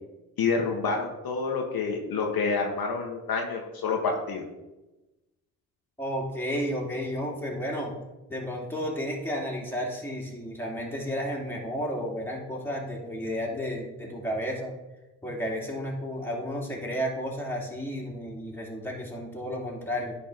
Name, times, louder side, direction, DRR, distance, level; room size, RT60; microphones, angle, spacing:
voice 1, 0.4-4.5, left 4 dB, 55° left, 1 dB, 1.2 m, -28 dB
voice 2, 6.0-7.9 8.3-14.7 15.2-20.2, equal, 5° left, -2 dB, 2.6 m, -32 dB
10.0 x 4.1 x 3.9 m, 1.0 s
hypercardioid pair, 50°, 44 cm